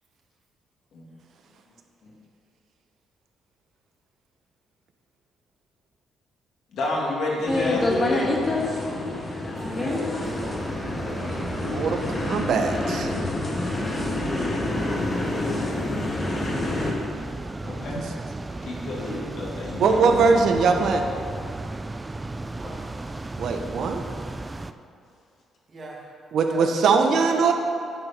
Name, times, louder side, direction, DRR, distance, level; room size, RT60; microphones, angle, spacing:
voice 1, 6.7-8.3 11.2-11.4 17.6-18.0 18.6-20.6, left 2 dB, 70° left, -3 dB, 2.1 m, -29 dB
sound 1, 7.5-16.9, left 2 dB, 35° left, 1.4 m, -27 dB
voice 2, 9.6-11.3 14.8-15.4 22.5-22.8 25.7-26.0 26.4-26.6 26.9-27.5, right 1 dB, 40° right, -4 dB, 2.2 m, -41 dB
sound 2, 10.2-24.7, right 2 dB, 20° right, 0.3 m, -35 dB
voice 3, 11.6-13.1 17.9-18.0 19.8-21.0 23.3-24.0 26.3-27.5, right 5 dB, 70° right, 4 dB, 0.8 m, -21 dB
9.5 x 5.0 x 5.9 m, 2.4 s
cardioid pair, 90°, 0 cm